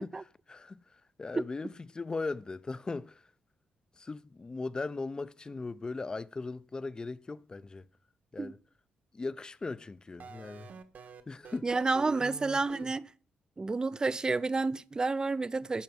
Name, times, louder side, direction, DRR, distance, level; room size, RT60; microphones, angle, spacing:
voice 1, 0.0-3.3 4.0-7.9 8.3-8.6 9.1-10.7 11.3-11.7 12.2-12.3 12.8-12.9, left 3 dB, 25° left, 0.6 m, -39 dB
sound 1, 10.2-12.8, right 6 dB, 55° right, 1.4 m, -46 dB
voice 2, 11.6-13.1 13.6-15.8, right 3 dB, 25° right, 0.5 m, -30 dB
11.5 x 5.4 x 7.8 m
cardioid pair, 115°, 3 cm